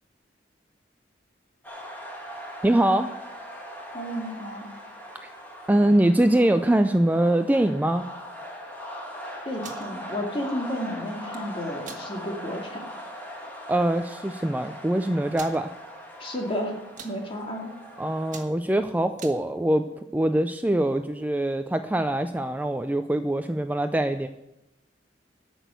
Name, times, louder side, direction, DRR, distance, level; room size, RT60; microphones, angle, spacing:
sound 1, 1.6-18.4, equal, 10° left, 2.2 m, -40 dB
voice 1, 2.6-3.1 5.7-8.1 13.7-15.7 18.0-19.9 20.1-24.3, right 1 dB, 10° right, 8 dB, 0.4 m, -23 dB
voice 2, 3.9-4.7 9.5-12.8 16.2-16.8 17.0-17.7, equal, 30° left, 1 dB, 2.1 m, -32 dB
sound 2, 9.5-9.9 11.1-11.4 11.8-12.0 12.5-12.6 13.0-13.2 14.0-14.1 14.3-14.4 15.3-15.6 16.2-16.5 16.8-17.2 17.7-17.9 18.2-19.4, right 6 dB, 45° right, 1.4 m, -43 dB
12.5 x 6.2 x 8.0 m, 0.91 s
head